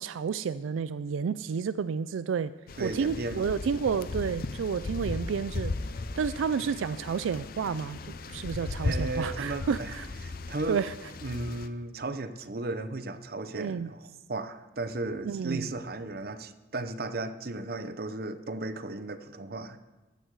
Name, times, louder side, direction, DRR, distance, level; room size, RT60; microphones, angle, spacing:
voice 1, 0.0-2.5 2.8-5.7 6.2-8.0 8.3-10.1 10.7-10.9 13.5-13.9 15.2-15.7, right 6 dB, 90° right, 15 dB, 0.4 m, -30 dB
sound 1, 2.7-11.7, left 3 dB, 50° left, 0.6 m, -36 dB
voice 2, 2.8-3.5 8.8-9.9 10.2-10.8 11.2-19.8, right 2 dB, 50° right, 11 dB, 0.7 m, -35 dB
14.0 x 9.2 x 4.8 m, 1.2 s
head